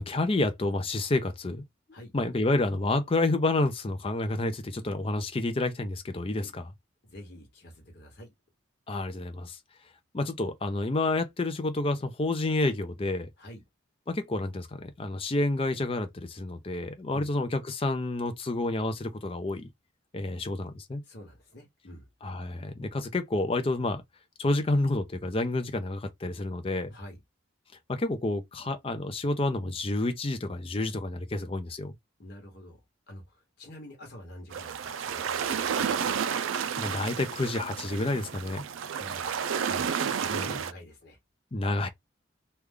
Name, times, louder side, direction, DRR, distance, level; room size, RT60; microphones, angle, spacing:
voice 1, 0.0-1.6 2.1-6.6 8.9-9.6 10.1-13.3 14.1-19.7 20.1-21.0 22.2-24.0 24.4-26.9 27.9-31.9 36.8-38.6 40.3-40.6 41.5-41.9, left 2 dB, 30° left, 0.5 m, -29 dB
voice 2, 7.0-8.3 13.4-13.6 17.1-17.3 21.0-22.1 26.9-27.2 32.2-32.8 33.1-36.4 38.9-39.9 40.2-41.2, left 1 dB, 55° left, 1.1 m, -48 dB
sound 1, 34.5-40.7, right 7 dB, 80° right, 0.4 m, -31 dB
3.2 x 2.3 x 3.6 m
head